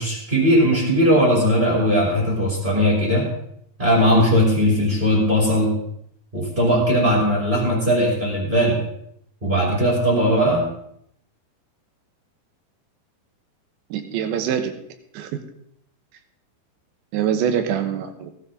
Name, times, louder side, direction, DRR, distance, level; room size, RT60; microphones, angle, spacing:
voice 1, 0.0-3.3 3.8-5.7 6.3-8.8 9.4-10.7, equal, 15° right, -3 dB, 2.2 m, -18 dB
voice 2, 13.9-14.7 15.1-15.3 17.1-18.3, right 8 dB, 75° right, 7 dB, 3.3 m, -24 dB
16.0 x 12.5 x 3.7 m, 0.71 s
omnidirectional pair, 5.4 m